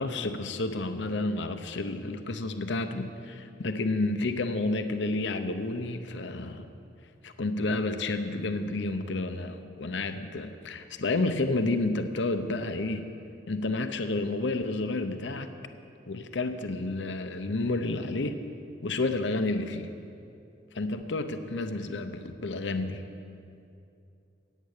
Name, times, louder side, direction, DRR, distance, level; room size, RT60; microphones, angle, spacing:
voice 1, 0.0-6.7 7.2-13.1 13.5-15.5 16.1-18.4 18.8-19.9 20.7-23.0, left 2 dB, 70° left, 8 dB, 0.8 m, -30 dB
17.0 x 9.2 x 6.6 m, 2.6 s
head